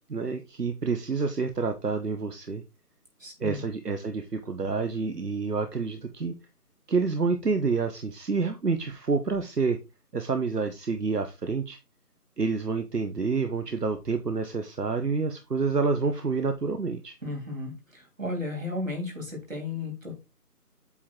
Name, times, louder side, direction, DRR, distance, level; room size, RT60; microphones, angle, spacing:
voice 1, 0.1-2.6 3.4-6.4 6.9-9.8 10.1-11.8 12.4-17.2, right 4 dB, 80° right, 7 dB, 1.1 m, -28 dB
voice 2, 3.2-3.6 17.2-20.1, left 2 dB, 55° right, 2 dB, 3.3 m, -34 dB
8.4 x 3.7 x 4.5 m, 0.26 s
figure-of-eight pair, 175°, 47 cm